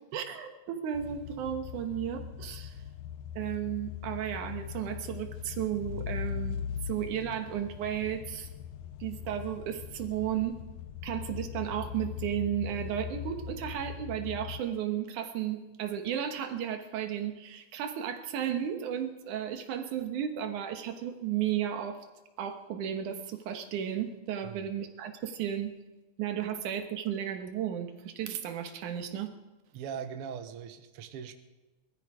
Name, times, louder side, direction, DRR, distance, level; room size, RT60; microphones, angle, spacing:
voice 1, 0.1-2.8 3.4-8.5 9.0-10.6 11.0-22.0 22.4-25.7 26.2-29.3, right 10 dB, 90° right, 6 dB, 2.8 m, -34 dB
sound 1, 0.9-14.6, left 8 dB, 70° left, 1.6 m, -40 dB
voice 2, 29.7-31.3, right 7 dB, 60° right, 8 dB, 1.8 m, -40 dB
20.5 x 13.0 x 5.0 m, 1.1 s
omnidirectional pair, 3.4 m